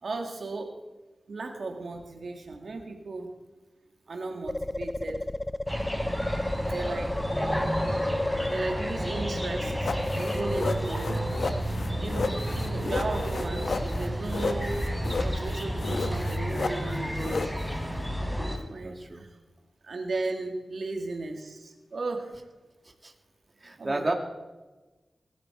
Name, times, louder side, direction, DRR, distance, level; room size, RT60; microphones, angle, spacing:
voice 1, 0.0-0.7 1.3-3.3 4.1-5.2 6.7-7.2 8.5-11.2 12.0-14.8 15.2-17.4 18.7-19.3 19.8-22.4 23.8-24.1, right 3 dB, 70° right, 3 dB, 2.1 m, -35 dB
sound 1, 4.5-10.6, left 1 dB, 20° left, 0.4 m, -32 dB
sound 2, 5.7-18.6, equal, 5° left, 3.4 m, -31 dB
sound 3, 9.8-18.1, left 4 dB, 75° left, 1.1 m, -33 dB
voice 2, 18.8-19.2 22.8-23.1 23.6-24.1, right 2 dB, 30° right, 4 dB, 2.1 m, -34 dB
20.0 x 12.0 x 4.5 m, 1.2 s
wide cardioid pair, 65°, 0 cm